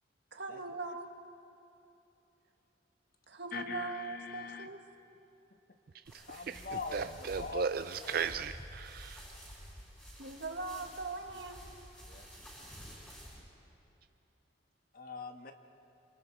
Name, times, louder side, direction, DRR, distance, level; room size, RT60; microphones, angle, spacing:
voice 1, 0.3-1.1 3.3-4.8 10.2-11.7, right 3 dB, 70° right, 4 dB, 1.7 m, -41 dB
voice 2, 3.5-4.7 6.3-7.7 8.0-8.3 12.0-12.3 14.9-15.5, left 4 dB, 50° left, 6 dB, 1.3 m, -42 dB
sound 1, 6.1-13.4, equal, 5° left, 6.7 m, -50 dB
voice 3, 6.9-9.2, right 6 dB, 50° right, 10 dB, 0.4 m, -36 dB
27.5 x 27.0 x 4.7 m, 2.8 s
head